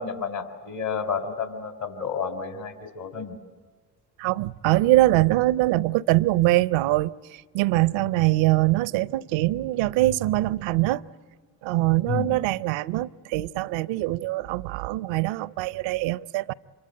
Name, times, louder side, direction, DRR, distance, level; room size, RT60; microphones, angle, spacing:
voice 1, 0.0-3.4 12.0-12.3, left 6 dB, 65° left, 3.5 m, -31 dB
voice 2, 4.2-11.0 11.6-16.5, right 17 dB, 75° right, 0.7 m, -23 dB
26.0 x 23.5 x 8.9 m
hypercardioid pair, 50°, 46 cm